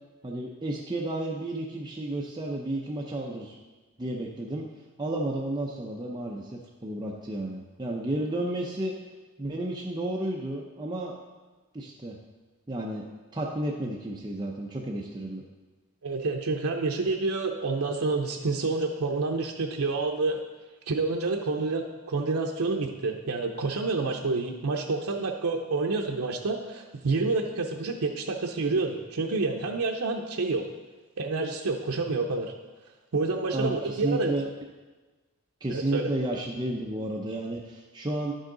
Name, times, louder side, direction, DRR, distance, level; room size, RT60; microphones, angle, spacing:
voice 1, 0.2-3.6 4.0-4.6 5.0-9.0 9.4-11.2 11.7-12.2 12.7-13.0 13.3-15.4 33.5-34.5 35.6-38.3, right 1 dB, 20° right, -2 dB, 0.6 m, -32 dB
voice 2, 16.0-20.4 20.9-30.7 31.2-32.5 33.1-34.3 35.7-36.1, right 3 dB, 75° right, 1 dB, 0.6 m, -28 dB
10.5 x 6.3 x 3.9 m, 1.2 s
head